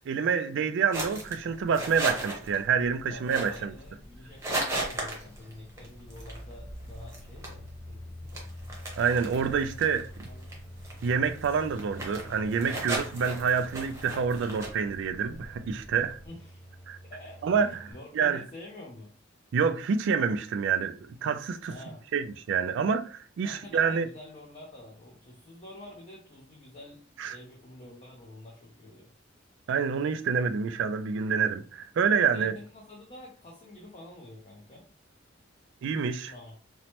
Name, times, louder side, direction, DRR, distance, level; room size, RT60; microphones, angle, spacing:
voice 1, 0.0-3.7 9.0-10.3 11.0-16.2 16.9-17.0 17.4-18.4 19.5-21.7 22.1-24.1 27.2-27.4 29.7-32.5 35.8-36.3, right 6 dB, 65° right, 0.3 m, -27 dB
sound 1, 0.9-16.3, right 1 dB, 15° right, 0.8 m, -38 dB
voice 2, 3.1-8.5 10.3-10.7 16.2-16.6 17.1-19.1 21.7-22.0 23.4-29.1 32.2-34.9 36.2-36.6, left 1 dB, 35° left, 0.6 m, -48 dB
sound 2, 3.9-17.9, equal, 15° left, 1.0 m, -47 dB
3.0 x 2.1 x 2.8 m
head